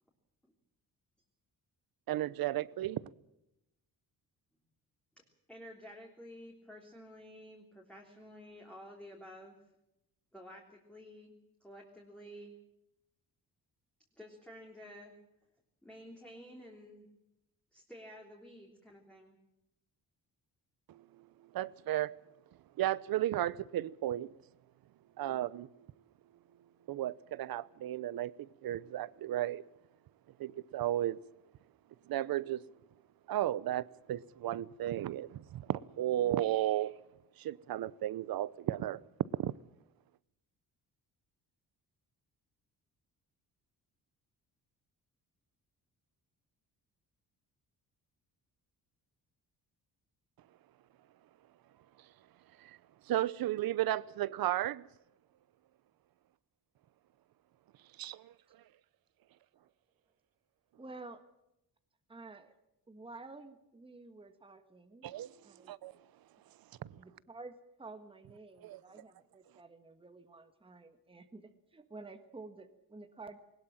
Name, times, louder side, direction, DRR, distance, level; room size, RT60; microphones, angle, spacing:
voice 1, 2.1-3.0 20.9-21.3 21.5-22.1 22.8-24.3 25.2-25.7 26.9-29.6 30.4-31.2 32.1-32.6 33.3-37.0 37.4-39.0 39.4-39.5 52.6-52.8 53.1-54.9 58.0-58.1 65.0-65.3 65.6-65.9 66.8-67.0 68.6-68.8, right 13 dB, 70° right, 0.9 m, -34 dB
voice 2, 5.2-9.5 10.3-11.3 11.6-12.6 14.2-15.1 15.8-17.1 17.7-19.4, equal, 5° left, 3.3 m, -51 dB
voice 3, 60.7-61.2 62.1-62.5 62.9-65.1 65.4-65.7 67.0-73.4, right 3 dB, 15° right, 1.6 m, -51 dB
21.0 x 20.0 x 7.4 m
cardioid pair, 150°, 37 cm